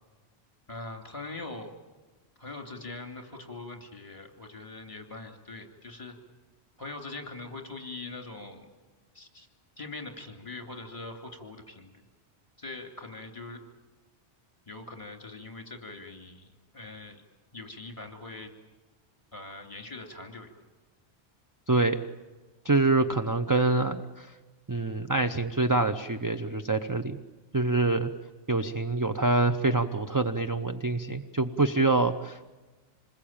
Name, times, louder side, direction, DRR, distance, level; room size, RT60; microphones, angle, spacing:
voice 1, 0.7-1.7 2.4-6.2 6.8-8.7 9.1-9.5 9.8-11.9 12.6-13.6 14.7-16.5 16.7-17.2 17.5-18.5 19.3-20.5 27.9-28.0, left 3 dB, 30° left, 4 dB, 3.0 m, -42 dB
voice 2, 21.7-22.0 22.6-24.3 24.7-27.2 27.5-28.1 28.5-32.5, right 3 dB, 20° right, 8 dB, 0.7 m, -26 dB
27.0 x 21.0 x 8.9 m, 1.2 s
omnidirectional pair, 1.1 m